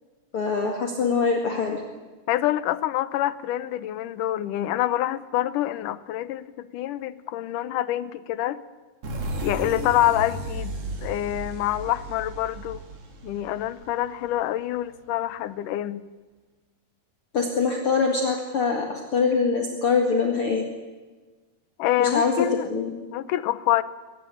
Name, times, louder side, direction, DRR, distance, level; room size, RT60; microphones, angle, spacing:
voice 1, 0.3-1.8 17.3-20.6 22.0-22.9, left 5 dB, 45° left, 2 dB, 2.6 m, -23 dB
voice 2, 2.3-8.6 9.4-12.8 13.2-16.0 21.8-22.7 23.1-23.8, left 13 dB, 75° left, 15 dB, 2.3 m, -26 dB
sound 1, 9.0-14.5, right 1 dB, 45° right, 3.8 m, -34 dB
23.0 x 20.0 x 8.6 m, 1.3 s
omnidirectional pair, 4.0 m